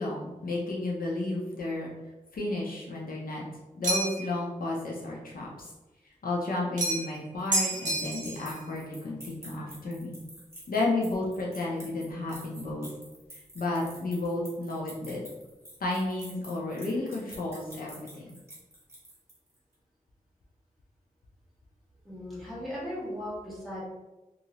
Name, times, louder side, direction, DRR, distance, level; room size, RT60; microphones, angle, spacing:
voice 1, 0.0-1.9 2.3-3.4 3.7-5.7 6.0-10.2 10.7-12.9 13.3-15.2 15.8-18.4, left 2 dB, 75° left, -3 dB, 0.6 m, -32 dB
sound 1, 3.8-4.3 6.8-7.2 7.5-8.5, right 1 dB, 60° right, 0.7 m, -29 dB
sound 2, 7.0-19.6, right 1 dB, 15° right, 1.3 m, -49 dB
voice 2, 22.0-23.8, equal, ahead, -9 dB, 1.3 m, -37 dB
2.7 x 2.6 x 3.0 m, 1.1 s
wide cardioid pair, 100°, 15 cm